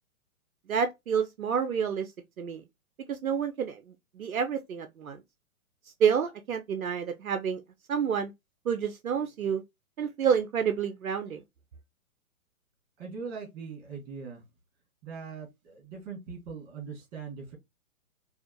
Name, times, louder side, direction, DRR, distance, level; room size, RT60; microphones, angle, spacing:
voice 1, 0.7-2.6 3.1-5.2 5.8-7.6 7.9-8.3 8.6-9.6 10.0-11.4, right 7 dB, 75° right, 0.6 m, -29 dB
voice 2, 13.0-14.4 15.0-17.6, right 5 dB, 30° right, 1.9 m, -41 dB
4.2 x 2.4 x 2.6 m
figure-of-eight pair, 115°, 43 cm